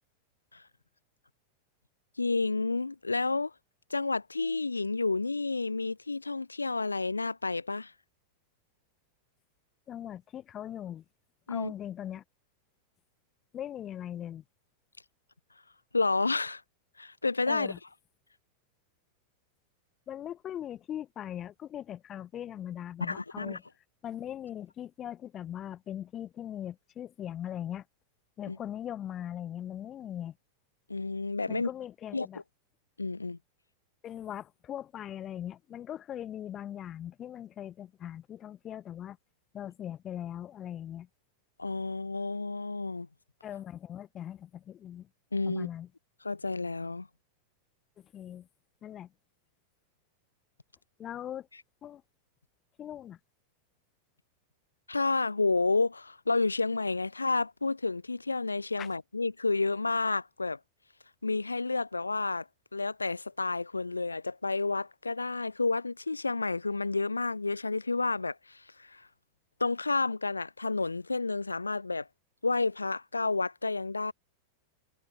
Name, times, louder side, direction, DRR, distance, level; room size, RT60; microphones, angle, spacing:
voice 1, 2.2-3.5 3.9-7.9 11.5-11.7 15.9-16.6 17.0-17.7 23.0-23.6 28.5-28.6 30.9-31.7 32.1-32.3 33.0-33.4 41.6-43.1 45.3-45.7 46.2-47.1 54.9-60.6 61.2-69.1 69.6-72.1 72.4-74.1, left 3 dB, 80° left, 0.8 m, -30 dB
voice 2, 9.9-11.0 11.5-12.2 13.5-14.4 17.5-17.8 20.1-23.6 24.0-27.8 28.4-30.4 31.5-32.4 34.0-39.2 39.5-41.1 43.4-45.1 45.4-45.9 48.0-48.5 48.8-49.1 51.0-51.5 51.8-52.0 52.8-53.2 58.8-58.9, left 10 dB, 30° left, 1.1 m, -40 dB
figure-of-eight pair, 90°, 0 cm